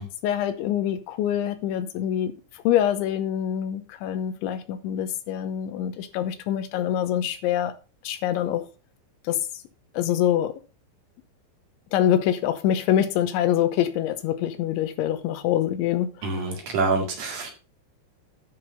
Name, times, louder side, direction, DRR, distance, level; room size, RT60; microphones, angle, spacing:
voice 1, 0.2-7.7 8.0-8.7 9.2-9.4 9.9-10.6 11.9-16.5, left 11 dB, 90° left, 3.4 m, -25 dB
voice 2, 16.2-17.5, right 3 dB, 50° right, 2.8 m, -26 dB
10.5 x 6.2 x 5.2 m
omnidirectional pair, 5.4 m